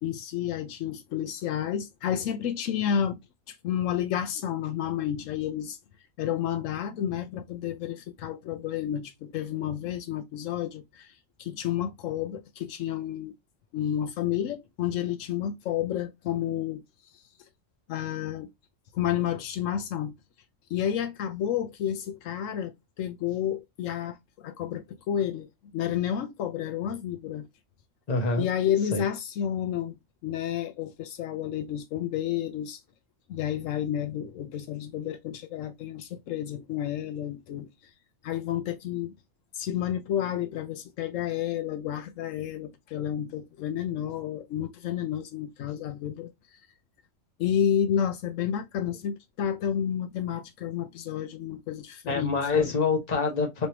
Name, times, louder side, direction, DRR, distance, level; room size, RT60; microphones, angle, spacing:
voice 1, 0.0-3.2 3.5-5.8 6.2-11.1 11.4-13.3 13.7-16.8 17.9-18.5 18.9-20.1 20.7-25.5 25.7-27.5 28.4-30.0 30.2-32.8 33.3-37.7 38.2-39.1 39.5-46.3 47.4-52.7, left 10 dB, 85° left, 1.0 m, -30 dB
voice 2, 28.1-28.5 28.9-29.0 52.1-53.7, left 4 dB, 35° left, 1.1 m, -26 dB
3.3 x 3.0 x 2.8 m
omnidirectional pair, 1.3 m